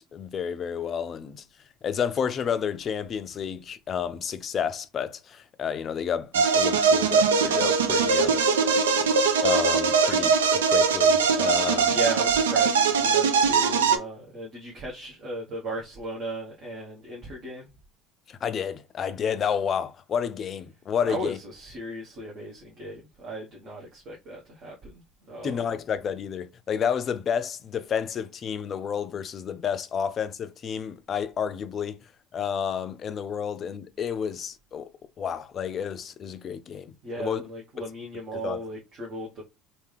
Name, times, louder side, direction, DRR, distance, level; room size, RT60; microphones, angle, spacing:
voice 1, 0.0-1.4 1.8-8.4 9.4-12.0 18.3-21.4 25.4-32.0 32.3-34.9 35.2-37.4 38.4-38.6, left 7 dB, 40° left, 0.5 m, -30 dB
sound 1, 6.3-14.0, right 5 dB, 80° right, 0.4 m, -21 dB
voice 2, 11.9-17.7 21.0-25.7 37.0-39.4, right 1 dB, 50° right, 1.2 m, -36 dB
3.3 x 2.7 x 3.3 m
figure-of-eight pair, 65°, 0 cm